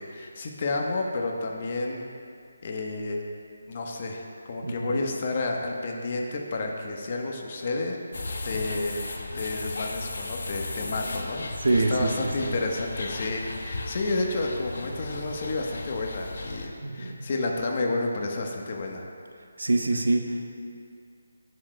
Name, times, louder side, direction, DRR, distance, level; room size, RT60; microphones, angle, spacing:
voice 1, 0.0-2.1 2.6-3.2 3.7-8.0 8.4-9.0 9.3-19.1, left 2 dB, 40° left, 1 dB, 1.1 m, -30 dB
voice 2, 4.6-5.0 11.6-12.6 16.8-17.2 19.6-20.5, right 2 dB, 75° right, 4 dB, 0.8 m, -26 dB
sound 1, 8.1-16.7, left 2 dB, 60° left, 0.8 m, -36 dB
17.0 x 6.2 x 2.2 m, 2.4 s
figure-of-eight pair, 155°, 0 cm